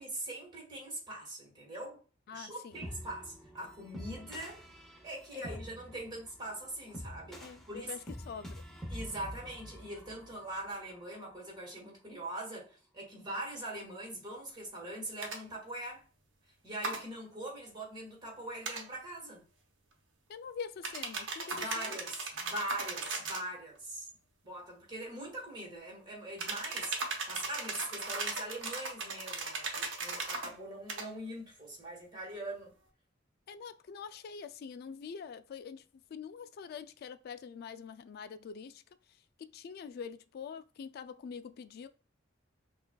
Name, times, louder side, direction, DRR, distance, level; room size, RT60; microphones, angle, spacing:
voice 1, 0.0-2.0 2.3-4.6 5.0-7.9 8.9-16.0 16.6-19.4 21.5-24.1 24.4-32.7, right 1 dB, 25° right, 1.7 m, -42 dB
voice 2, 2.3-2.8 5.3-5.4 7.4-8.6 20.3-21.9 33.5-38.8 39.1-41.9, left 6 dB, 55° left, 0.3 m, -45 dB
sound 1, 2.7-10.9, equal, ahead, 0.7 m, -47 dB
sound 2, 15.2-15.4 16.8-17.0 18.6-18.8 20.8-23.5 26.4-30.5 30.9-31.1, right 3 dB, 70° right, 0.9 m, -37 dB
5.7 x 2.5 x 2.3 m
head